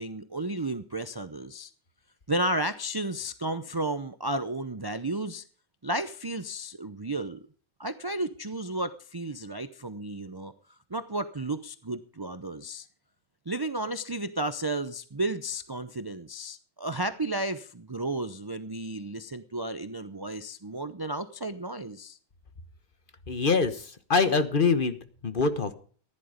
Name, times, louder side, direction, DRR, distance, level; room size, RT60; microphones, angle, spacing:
voice 1, 0.0-1.7 2.3-5.4 5.8-7.4 7.8-10.5 10.9-12.9 13.5-22.2, right 1 dB, 25° right, 11 dB, 0.5 m, -33 dB
voice 2, 23.3-25.0 25.2-25.7, left 4 dB, 40° left, 10 dB, 1.3 m, -24 dB
15.0 x 11.0 x 5.1 m, 0.42 s
omnidirectional pair, 1.4 m